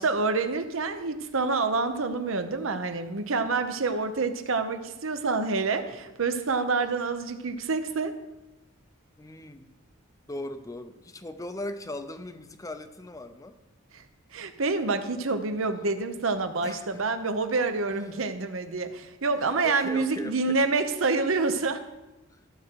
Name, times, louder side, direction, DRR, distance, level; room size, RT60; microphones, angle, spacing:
voice 1, 0.0-8.1 13.9-14.0 14.3-21.8, right 3 dB, 70° right, 9 dB, 0.9 m, -27 dB
voice 2, 9.2-9.7 10.3-13.6 16.6-17.1 19.4-20.6 22.3-22.4, left 1 dB, 15° left, 9 dB, 0.6 m, -39 dB
14.0 x 7.4 x 4.6 m, 1.1 s
head